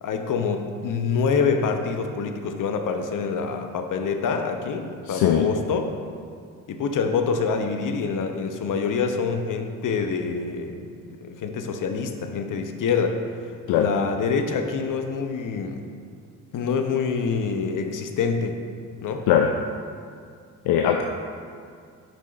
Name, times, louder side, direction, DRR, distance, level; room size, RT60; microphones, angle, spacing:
voice 1, 0.0-5.9 6.7-15.9 16.5-18.6 19.0-19.2, left 5 dB, 55° left, 6 dB, 0.9 m, -26 dB
voice 2, 5.1-5.5 13.7-13.9 19.3-19.5 20.7-21.0, left 9 dB, 70° left, 4 dB, 0.6 m, -20 dB
8.1 x 5.8 x 3.9 m, 2.3 s
hypercardioid pair, 50°, 39 cm